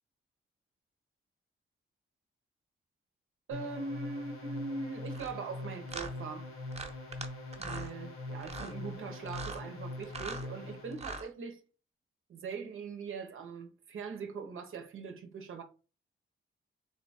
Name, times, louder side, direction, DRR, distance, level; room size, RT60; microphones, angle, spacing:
sound 1, 3.5-11.1, left 2 dB, 85° left, 1.5 m, -43 dB
voice 1, 3.5-6.5 7.5-11.6 12.3-15.6, right 4 dB, 75° right, 0.7 m, -41 dB
sound 2, 5.1-5.3 5.9-6.1 6.7-7.3 7.5-7.9 8.4-8.7 9.3-9.6 10.0-10.5 10.9-11.3, right 3 dB, 30° right, 0.8 m, -41 dB
3.7 x 2.3 x 4.0 m
cardioid pair, 70°, 21 cm